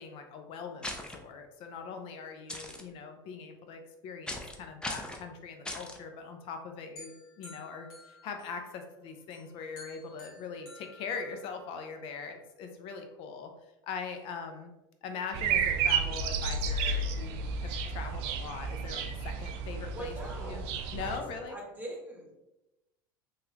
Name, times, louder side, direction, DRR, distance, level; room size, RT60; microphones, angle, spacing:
voice 1, 0.0-13.5 13.8-14.7 15.0-20.7 20.9-21.6, left 5 dB, 55° left, 5 dB, 0.5 m, -41 dB
sound 1, 0.8-1.2 2.5-2.8 4.3-4.5 4.8-5.2 5.6-6.0, left 1 dB, 10° left, 0.5 m, -38 dB
sound 2, 7.0-8.9 9.3-11.8, left 2 dB, 75° left, 1.3 m, -53 dB
sound 3, 15.3-21.2, right 5 dB, 65° right, 0.4 m, -32 dB
voice 2, 19.9-20.6 21.0-21.2 21.5-22.3, right 1 dB, 15° right, -1 dB, 1.0 m, -42 dB
3.0 x 2.4 x 2.8 m, 0.99 s
hypercardioid pair, 90°, 11 cm